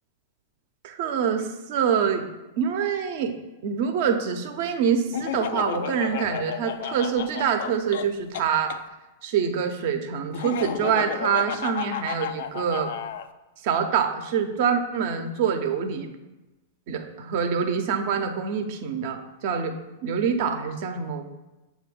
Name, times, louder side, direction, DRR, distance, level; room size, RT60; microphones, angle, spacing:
voice 1, 0.8-2.3 2.6-3.4 3.6-8.8 9.2-12.9 13.6-16.1 16.9-21.2, right 7 dB, 55° right, 6 dB, 0.7 m, -25 dB
Laughter, 5.1-8.8 10.3-13.3, left 9 dB, 60° left, 0.3 m, -32 dB
7.5 x 2.6 x 5.2 m, 1.1 s
figure-of-eight pair, 100°, 0 cm